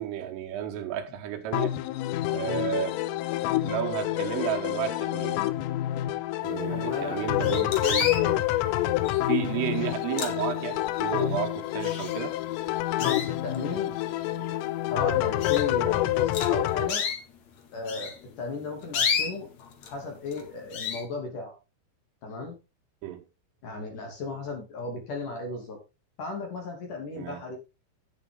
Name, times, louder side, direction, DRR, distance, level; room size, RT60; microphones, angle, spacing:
voice 1, 0.0-1.8 2.3-3.0 3.4-5.4 6.4-8.5 9.3-12.3 23.0-23.2 27.2-27.4, right 11 dB, 80° right, 4.0 m, -32 dB
sound 1, 1.5-16.9, left 14 dB, 90° left, 3.4 m, -27 dB
voice 2, 6.7-7.7 13.0-14.0 14.9-17.0 17.7-19.5 19.9-21.5 22.2-22.6 23.6-25.8 26.2-27.6, left 3 dB, 45° left, 3.6 m, -35 dB
sound 2, 6.8-6.9 7.4-8.3 9.0-9.4 9.9-10.8 11.3-11.4 11.8-12.5 13.0-13.7 14.3-14.4 14.8-14.9 15.4-15.7 16.3-17.2 17.9-19.9 20.3-20.5 20.7-21.0, left 6 dB, 70° left, 1.7 m, -31 dB
10.5 x 9.2 x 3.8 m
omnidirectional pair, 5.8 m